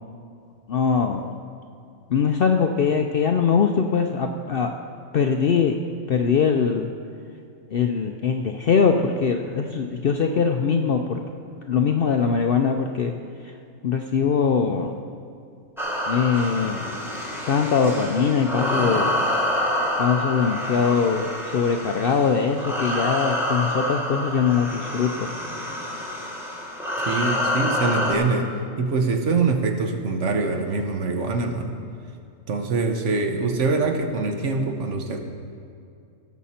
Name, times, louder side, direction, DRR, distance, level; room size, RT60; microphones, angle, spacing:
voice 1, 0.7-1.3 2.1-4.7 5.1-5.8 6.1-6.9 7.7-11.2 11.7-13.1 13.4-13.5 13.8-14.9 16.1-16.8 17.5-19.2 20.0-25.3 26.2-26.3 27.0-27.2, left 6 dB, 60° left, 4 dB, 0.6 m, -22 dB
sound 1, 15.8-28.1, left 1 dB, ahead, 1.2 m, -27 dB
voice 2, 27.0-31.7 32.5-35.2, right 3 dB, 60° right, 5 dB, 1.2 m, -24 dB
17.0 x 7.3 x 4.3 m, 2.4 s
omnidirectional pair, 1.4 m